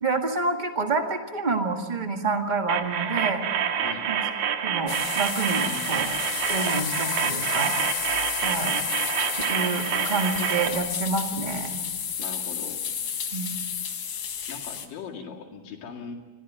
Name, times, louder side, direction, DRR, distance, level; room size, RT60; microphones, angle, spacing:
voice 1, 0.0-3.4 4.1-4.2 4.6-6.1 6.5-7.7 8.4-8.7 9.5-11.8 13.3-13.5, right 3 dB, 30° right, 4 dB, 0.8 m, -28 dB
sound 1, 2.7-10.7, right 8 dB, 80° right, 3.3 m, -27 dB
sound 2, 4.9-14.9, left 7 dB, 50° left, 2.0 m, -31 dB
voice 2, 5.6-6.2 12.2-12.8 14.5-16.2, left 6 dB, 75° left, 1 dB, 3.9 m, -40 dB
25.5 x 16.5 x 9.4 m, 1.3 s
omnidirectional pair, 4.0 m